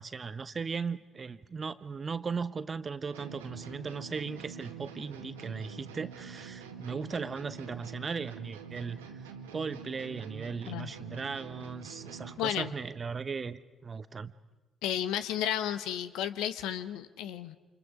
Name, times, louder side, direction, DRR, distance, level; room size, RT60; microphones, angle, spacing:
voice 1, 0.0-14.3, right 5 dB, 35° right, 13 dB, 1.1 m, -37 dB
sound 1, 3.1-12.5, right 6 dB, 80° right, 1.8 m, -46 dB
voice 2, 12.4-12.7 14.8-17.6, left 10 dB, 65° left, 12 dB, 1.0 m, -33 dB
29.5 x 27.5 x 5.0 m, 1.1 s
figure-of-eight pair, 45°, 0 cm